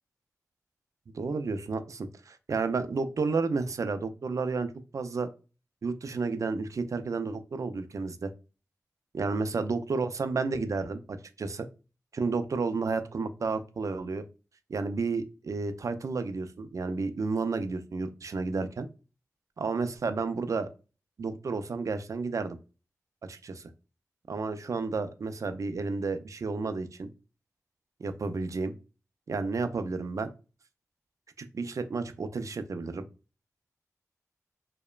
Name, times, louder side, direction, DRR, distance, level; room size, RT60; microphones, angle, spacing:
voice 1, 1.1-5.3 5.8-8.3 9.1-11.0 11.4-11.7 12.1-14.3 14.7-18.9 19.6-20.7 21.2-22.6 23.2-23.6 24.3-27.1 28.0-28.7 29.3-30.3 31.5-33.1, right 4 dB, 60° right, 10 dB, 0.3 m, -31 dB
2.8 x 2.1 x 2.3 m, 0.33 s
cardioid pair, 40°, 6 cm